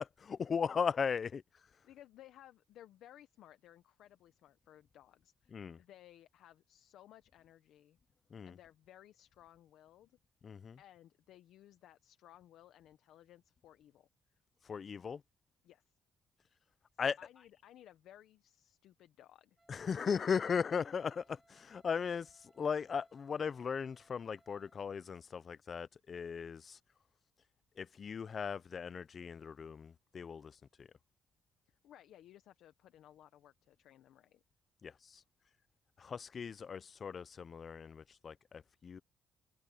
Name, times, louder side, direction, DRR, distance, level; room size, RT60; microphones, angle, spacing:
voice 1, 0.0-1.4 5.5-5.8 8.3-8.6 10.4-10.8 14.6-15.2 17.0-17.2 19.7-26.8 27.8-30.9 34.8-35.2 36.0-39.0, left 6 dB, 45° left, 0.5 m, -38 dB
voice 2, 1.8-8.0 8.5-10.2 10.8-14.4 15.6-15.8 17.0-19.6 31.7-34.4, left 12 dB, 80° left, 1.0 m, -59 dB
Wind instrument woodwind instrument, 19.6-24.9, right 2 dB, 15° right, 2.6 m, -71 dB
cardioid pair, 90°, 0 cm